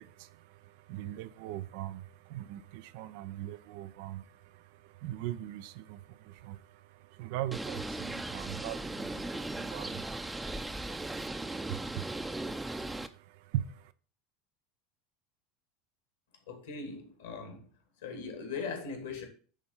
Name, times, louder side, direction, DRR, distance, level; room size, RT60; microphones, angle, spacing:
voice 1, 0.0-13.9, right 13 dB, 55° right, 0.6 m, -41 dB
Bird, 7.5-13.1, right 2 dB, 10° right, 0.7 m, -37 dB
voice 2, 16.5-17.7 18.0-19.2, left 4 dB, 70° left, 2.5 m, -40 dB
10.0 x 3.9 x 5.5 m
figure-of-eight pair, 75°, 0 cm